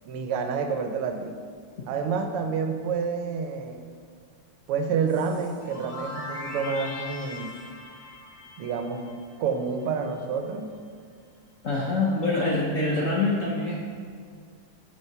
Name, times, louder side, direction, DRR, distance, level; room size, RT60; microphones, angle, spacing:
voice 1, 0.1-1.4 1.9-3.8 4.7-7.5 8.6-9.0 9.4-10.7, right 5 dB, 85° right, 6 dB, 1.7 m, -28 dB
sound 1, 5.1-9.8, left 2 dB, 30° left, 1.2 m, -40 dB
voice 2, 11.6-13.9, left 2 dB, 55° left, -3 dB, 0.9 m, -25 dB
7.7 x 5.5 x 5.9 m, 2.1 s
omnidirectional pair, 2.4 m